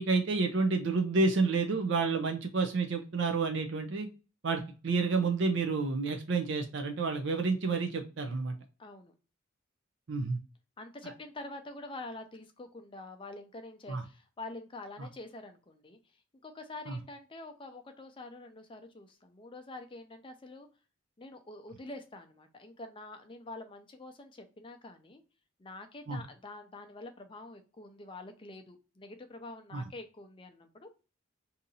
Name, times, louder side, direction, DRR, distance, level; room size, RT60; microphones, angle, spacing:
voice 1, 0.0-4.1 4.4-8.5 10.1-10.4 13.9-14.0 16.9-17.0 26.1-26.2 29.7-29.8, right 4 dB, 60° right, 4 dB, 0.5 m, -29 dB
voice 2, 8.8-9.1 10.8-16.0 16.4-20.7 21.2-25.2 25.6-30.9, left 2 dB, 25° left, 7 dB, 0.5 m, -46 dB
2.8 x 2.6 x 3.9 m, 0.34 s
head